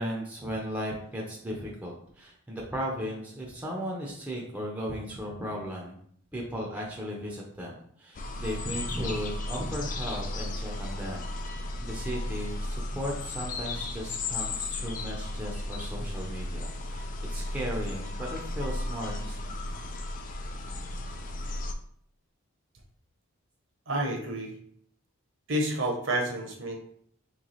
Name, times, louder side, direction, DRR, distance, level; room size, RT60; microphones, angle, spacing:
voice 1, 0.0-6.0 6.3-19.6, equal, 5° right, -3 dB, 0.6 m, -36 dB
sound 1, 8.1-21.7, left 2 dB, 35° left, 0.3 m, -35 dB
voice 2, 23.9-24.6 25.5-26.8, right 1 dB, 55° right, 2 dB, 0.9 m, -29 dB
3.4 x 3.1 x 4.0 m, 0.63 s
head